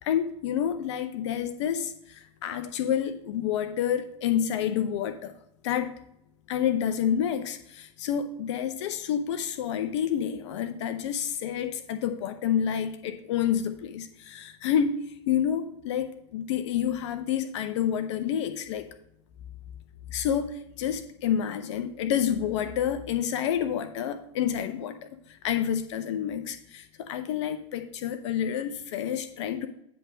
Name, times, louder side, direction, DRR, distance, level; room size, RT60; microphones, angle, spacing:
voice 1, 0.0-5.3 5.6-5.9 6.5-15.0 15.3-18.9 20.1-25.0 25.3-29.7, left 9 dB, 60° left, 9 dB, 0.7 m, -29 dB
9.9 x 3.5 x 6.2 m, 0.78 s
hypercardioid pair, 95°, 17 cm